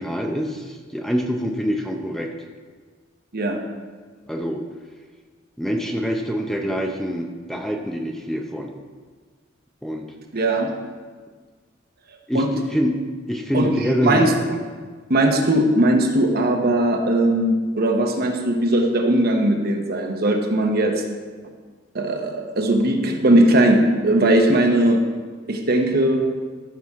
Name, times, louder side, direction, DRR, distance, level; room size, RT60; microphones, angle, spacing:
voice 1, 0.0-2.3 4.3-4.6 5.6-8.7 9.8-10.1 12.3-12.4 12.7-13.0 13.3-14.3, equal, ahead, 2 dB, 0.6 m, -25 dB
voice 2, 10.3-10.7 12.3-12.5 13.5-14.6 15.1-21.0 21.9-25.0 25.5-26.3, right 1 dB, 55° right, 3 dB, 1.0 m, -19 dB
14.0 x 6.1 x 3.6 m, 1.5 s
head